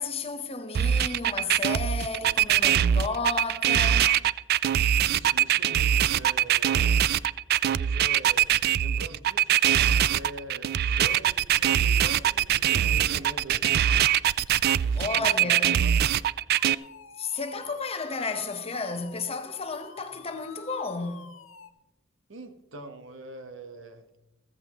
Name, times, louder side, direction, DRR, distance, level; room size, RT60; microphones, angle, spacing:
voice 1, 0.0-4.2 15.0-15.8 17.2-21.3, left 4 dB, 30° left, 1.0 m, -32 dB
sound 1, 0.7-16.7, right 10 dB, 55° right, 0.3 m, -22 dB
voice 2, 4.8-7.0 7.8-8.5 8.7-9.6 10.1-13.6 14.8-16.0 22.3-24.2, right 2 dB, 70° right, 1.3 m, -43 dB
sound 2, 16.5-21.7, left 5 dB, 90° left, 0.9 m, -49 dB
15.0 x 14.5 x 3.1 m
head